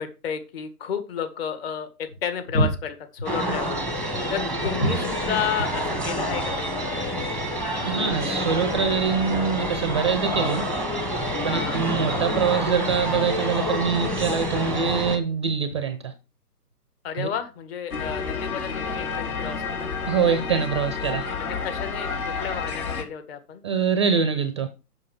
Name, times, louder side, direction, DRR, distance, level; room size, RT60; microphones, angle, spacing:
voice 1, 0.0-3.8 4.3-6.7 7.0-7.2 11.5-11.8 17.0-19.9 21.4-23.6, left 8 dB, 40° left, 1.9 m, -32 dB
sound 1, 2.1-3.6 4.6-6.7 7.0-7.1 7.6-7.7 8.0-8.6 10.0-12.6 12.9-13.1 14.4-15.8 17.0-17.1 17.3-17.6, right 1 dB, 80° left, 5.3 m, -32 dB
sound 2, 3.3-15.2, equal, 5° left, 0.8 m, -27 dB
voice 2, 7.8-10.7 11.4-16.1 17.2-17.3 20.1-21.3 23.6-24.7, right 6 dB, 20° right, 0.5 m, -24 dB
sound 3, 17.9-23.0, left 5 dB, 65° left, 2.9 m, -30 dB
7.6 x 6.4 x 5.6 m
hypercardioid pair, 135°, 47 cm